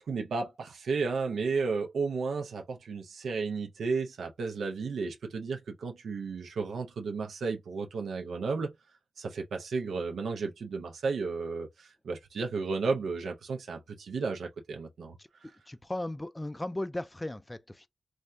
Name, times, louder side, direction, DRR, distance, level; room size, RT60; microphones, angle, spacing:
voice 1, 0.1-8.7 9.2-15.5, right 4 dB, 85° right, 0.5 m, -33 dB
voice 2, 15.2-17.9, left 1 dB, 15° left, 0.3 m, -37 dB
3.3 x 2.2 x 2.5 m
cardioid pair, 85°, 0 cm